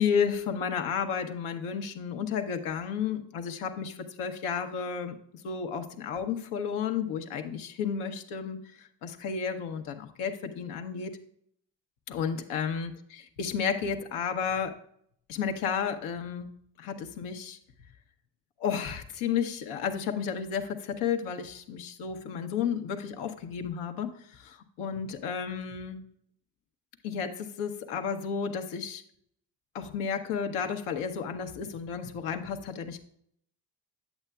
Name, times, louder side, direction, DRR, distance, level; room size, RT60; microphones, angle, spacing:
voice 1, 0.0-5.2 5.4-11.1 12.1-14.7 15.3-16.5 16.8-17.6 18.6-26.0 27.0-29.0 29.7-33.0, left 7 dB, 75° left, 6 dB, 0.9 m, -32 dB
8.0 x 8.0 x 2.3 m, 0.68 s
hypercardioid pair, 45°, 50 cm